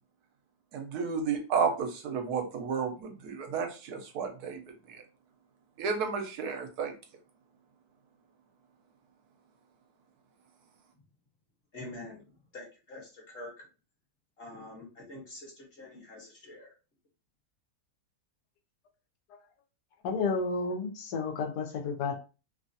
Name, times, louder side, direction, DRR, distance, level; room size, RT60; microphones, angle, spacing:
voice 1, 0.7-4.6 4.9-5.0 5.8-6.9, right 5 dB, 80° right, 1.1 m, -32 dB
voice 2, 11.7-13.7 14.4-16.7, left 2 dB, 45° left, 1.1 m, -46 dB
voice 3, 20.0-22.2, left 4 dB, 80° left, 1.2 m, -31 dB
3.0 x 2.3 x 2.6 m
omnidirectional pair, 1.7 m